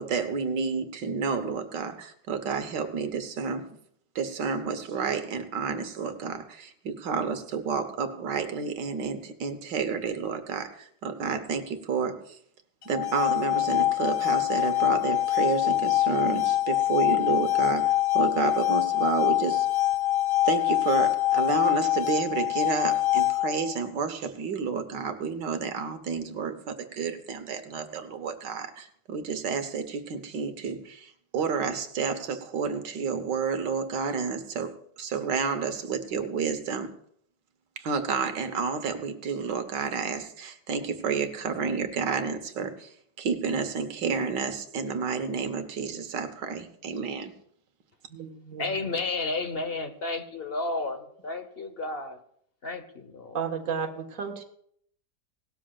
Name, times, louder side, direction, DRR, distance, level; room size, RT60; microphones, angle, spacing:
voice 1, 0.0-3.7 4.2-12.4 12.9-19.7 20.5-36.9 37.8-47.3, right 6 dB, 75° right, 8 dB, 1.7 m, -30 dB
sound 1, 12.8-23.8, left 14 dB, 70° left, 1.3 m, -24 dB
voice 2, 48.6-52.2 52.6-53.4, left 3 dB, 40° left, 8 dB, 1.1 m, -32 dB
voice 3, 53.3-54.4, right 6 dB, 50° right, 2 dB, 1.7 m, -31 dB
18.5 x 12.5 x 2.4 m, 0.66 s
omnidirectional pair, 1.9 m